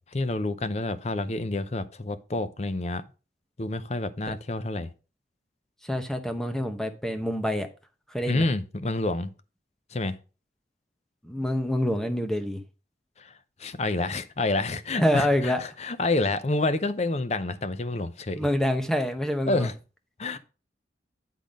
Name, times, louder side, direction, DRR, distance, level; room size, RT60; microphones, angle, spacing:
voice 1, 0.1-3.0 3.6-4.9 8.3-9.3 9.9-10.2 13.2-13.3 13.6-18.5 19.4-19.7 20.2-20.4, left 2 dB, 35° left, 0.6 m, -28 dB
voice 2, 5.9-7.7 8.1-8.4 11.2-12.6 15.0-15.6 18.4-19.7, equal, 5° left, 0.9 m, -26 dB
10.5 x 3.9 x 5.2 m
head